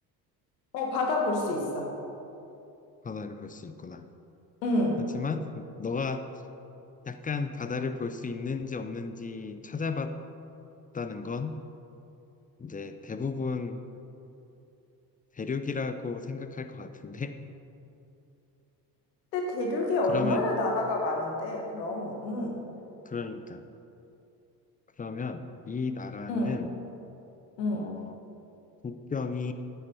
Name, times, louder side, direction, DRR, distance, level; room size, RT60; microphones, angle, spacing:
voice 1, 0.7-1.9 4.6-5.0 19.3-22.6 26.3-26.5 27.6-27.9, left 2 dB, 85° left, 0 dB, 1.7 m, -28 dB
voice 2, 3.0-4.1 5.1-6.2 7.1-10.1 10.9-11.6 12.6-13.8 15.4-17.4 20.1-20.4 23.1-23.6 25.0-26.7 27.7-28.2 28.8-29.5, left 4 dB, 15° left, 9 dB, 0.5 m, -34 dB
8.6 x 7.1 x 5.5 m, 2.8 s
hypercardioid pair, 60°, 49 cm